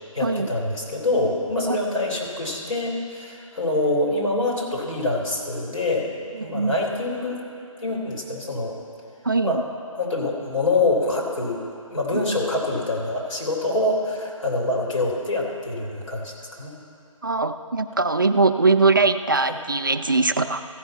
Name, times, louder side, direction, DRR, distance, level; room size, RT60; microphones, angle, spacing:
voice 1, 0.1-6.1 6.4-7.4 7.8-8.8 9.4-9.6 9.9-11.6 11.9-16.8 19.4-19.5, left 2 dB, 65° left, -2 dB, 3.3 m, -25 dB
voice 2, 6.4-6.8 9.2-9.6 12.1-12.2 17.2-20.6, right 3 dB, 40° right, 8 dB, 0.3 m, -21 dB
14.5 x 5.6 x 9.1 m, 2.7 s
figure-of-eight pair, 155°, 17 cm